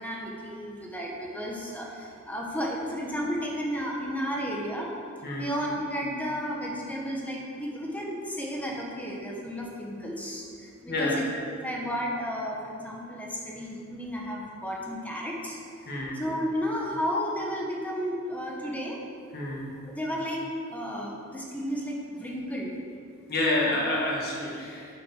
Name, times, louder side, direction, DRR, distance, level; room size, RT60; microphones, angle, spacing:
voice 1, 0.0-4.9 5.4-19.0 19.8-20.5 20.7-22.7, equal, 5° left, -2 dB, 1.1 m, -33 dB
voice 2, 10.9-11.2 15.9-16.2 19.3-19.7 23.3-24.9, left 2 dB, 45° left, -3 dB, 2.0 m, -28 dB
9.4 x 7.5 x 4.5 m, 2.5 s
head